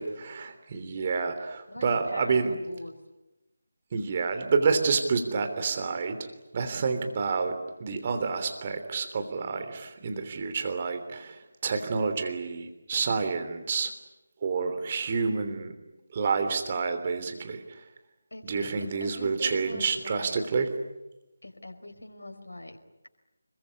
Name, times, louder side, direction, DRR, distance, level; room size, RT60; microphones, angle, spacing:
voice 1, 0.0-2.5 3.9-6.3 6.5-13.9 14.4-15.7 16.1-17.8 18.4-20.7, right 5 dB, 30° right, 7 dB, 3.2 m, -29 dB
voice 2, 1.7-3.0 18.3-20.4 21.4-22.8, left 1 dB, 75° left, 4 dB, 4.8 m, -42 dB
26.0 x 22.5 x 9.8 m, 0.99 s
figure-of-eight pair, 160°, 0 cm